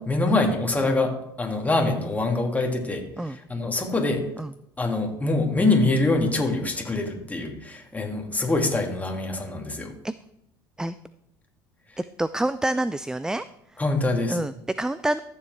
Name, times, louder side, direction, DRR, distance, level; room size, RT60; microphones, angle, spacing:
voice 1, 0.0-4.3 4.8-9.9 13.8-14.4, left 2 dB, 15° left, 2 dB, 2.1 m, -24 dB
voice 2, 12.0-13.4 13.7-13.8 14.3-15.2, right 1 dB, 5° right, 15 dB, 0.3 m, -27 dB
14.0 x 7.3 x 3.3 m, 0.79 s
hypercardioid pair, 70°, 11 cm